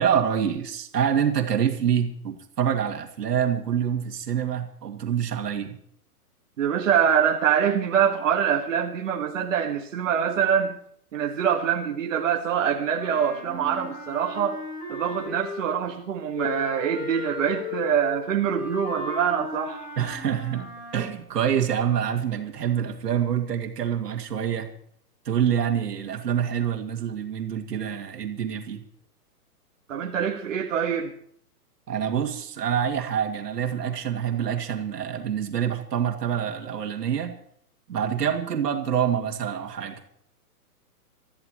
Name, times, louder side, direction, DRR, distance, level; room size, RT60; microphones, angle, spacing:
voice 1, 0.0-5.8 20.0-24.7 25.3-28.8 31.9-37.4 37.9-40.0, right 8 dB, 80° right, 3 dB, 2.5 m, -26 dB
voice 2, 6.6-10.7 11.1-14.6 14.9-19.8 29.9-31.1, right 8 dB, 50° right, 0 dB, 1.9 m, -24 dB
Wind instrument woodwind instrument, 12.9-15.8 16.3-21.2, left 2 dB, 20° left, 4.6 m, -36 dB
25.0 x 14.0 x 3.1 m, 0.65 s
hypercardioid pair, 170°, 47 cm